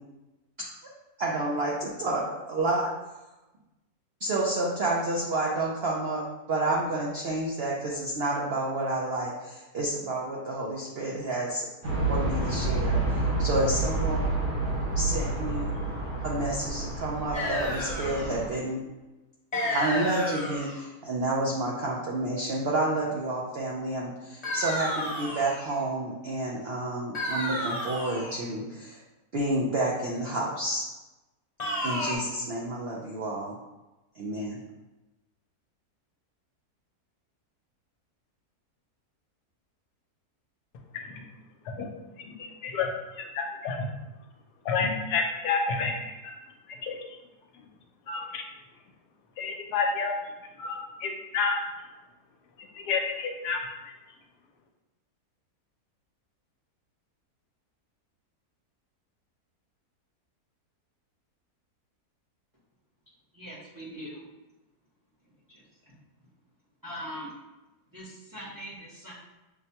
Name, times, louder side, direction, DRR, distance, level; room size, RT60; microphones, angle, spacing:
voice 1, 1.2-2.9 4.2-6.2 6.5-11.7 12.1-14.2 15.0-15.7 16.2-18.8 19.7-29.0 29.3-30.8 31.8-33.6 34.1-34.6, right 2 dB, 70° right, -3 dB, 0.6 m, -30 dB
sound 1, 11.8-18.5, right 2 dB, 90° right, 1.6 m, -29 dB
sound 2, 17.3-18.3 19.5-20.8 24.4-25.8 27.1-28.4 31.6-32.2, left 1 dB, 30° left, 0.8 m, -31 dB
voice 2, 42.2-42.9 43.2-43.9 44.6-46.3 46.7-47.2 48.1-48.4 49.4-50.2 50.6-51.6 52.7-53.9, left 4 dB, 85° left, 2 dB, 1.2 m, -30 dB
voice 3, 63.3-64.2 65.5-66.0 66.8-67.3 67.9-69.1, equal, 20° right, -6 dB, 0.6 m, -41 dB
6.4 x 2.2 x 2.8 m, 1.1 s
omnidirectional pair, 1.7 m